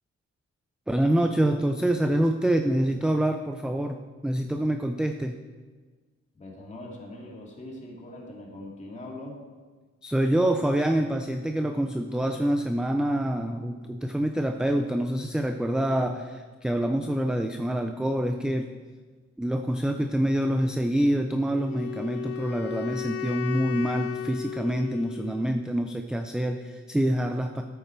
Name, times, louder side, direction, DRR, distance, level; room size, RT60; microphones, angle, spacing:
voice 1, 0.9-5.4 10.0-18.7 19.4-27.6, right 1 dB, 5° right, 6 dB, 0.4 m, -26 dB
voice 2, 6.3-9.4, left 1 dB, 25° left, -3 dB, 2.3 m, -41 dB
Wind instrument woodwind instrument, 21.5-25.6, left 10 dB, 55° left, 0.5 m, -35 dB
13.5 x 8.1 x 4.5 m, 1.4 s
wide cardioid pair, 165°, 29 cm